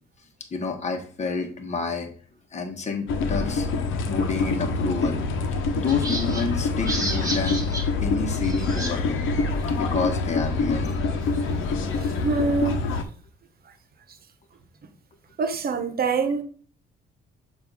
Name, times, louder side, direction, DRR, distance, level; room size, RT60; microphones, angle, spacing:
voice 1, 0.5-2.1 2.5-3.7 4.0-5.2 5.8-7.6 8.0-9.2 9.7-10.9, left 5 dB, 35° left, 1.3 m, -29 dB
sound 1, 3.1-13.0, left 4 dB, 80° left, 0.9 m, -26 dB
sound 2, 5.9-9.0 9.3-9.4 9.7-12.1, right 1 dB, 15° right, 1.7 m, -33 dB
voice 2, 12.0-12.8 15.4-16.4, right 4 dB, 50° right, 1.0 m, -25 dB
6.8 x 2.7 x 5.4 m
cardioid pair, 90°, 20 cm